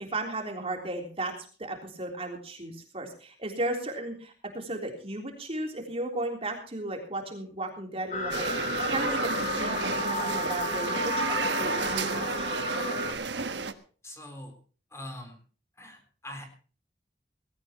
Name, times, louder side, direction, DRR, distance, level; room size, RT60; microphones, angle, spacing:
voice 1, 0.0-9.3 9.6-12.5, right 2 dB, 35° right, 2 dB, 3.6 m, -35 dB
sound 1, 8.1-13.1, left 1 dB, 45° left, 4.4 m, -32 dB
sound 2, 8.3-13.7, right 4 dB, 90° right, 1.4 m, -32 dB
voice 2, 14.0-14.6 14.9-15.4 15.8-16.4, left 1 dB, 15° left, 5 dB, 3.9 m, -42 dB
19.5 x 16.5 x 3.0 m, 0.39 s
head